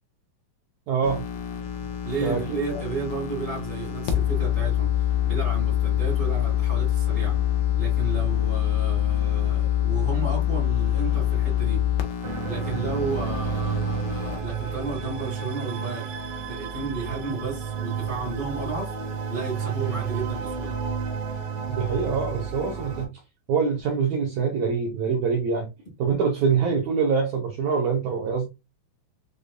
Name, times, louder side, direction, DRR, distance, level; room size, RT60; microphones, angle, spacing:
voice 1, 0.9-1.2 2.2-2.8 21.7-23.1 23.5-25.7 26.0-28.5, right 5 dB, 80° right, 1.6 m, -25 dB
sound 1, 1.0-14.4, left 11 dB, 75° left, 2.0 m, -25 dB
voice 2, 2.0-7.4 7.7-11.8 12.4-16.1 16.5-18.9 19.3-20.7, right 4 dB, 50° left, 0.5 m, -32 dB
sound 2, 12.2-23.1, right 6 dB, 65° right, 2.0 m, -31 dB
6.5 x 2.6 x 2.2 m
omnidirectional pair, 4.3 m